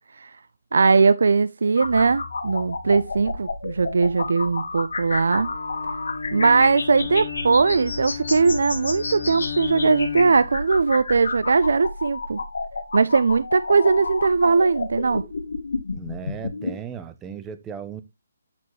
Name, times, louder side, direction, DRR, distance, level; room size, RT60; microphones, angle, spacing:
voice 1, 0.7-5.5 6.3-12.4 12.9-15.2, right 4 dB, 70° right, 0.3 m, -20 dB
sound 1, 1.8-16.7, left 3 dB, 80° left, 1.6 m, -31 dB
Bowed string instrument, 5.3-10.6, left 7 dB, 50° left, 2.4 m, -34 dB
voice 2, 15.9-18.0, right 7 dB, 10° right, 0.5 m, -36 dB
8.4 x 4.5 x 3.0 m
hypercardioid pair, 175°, 0 cm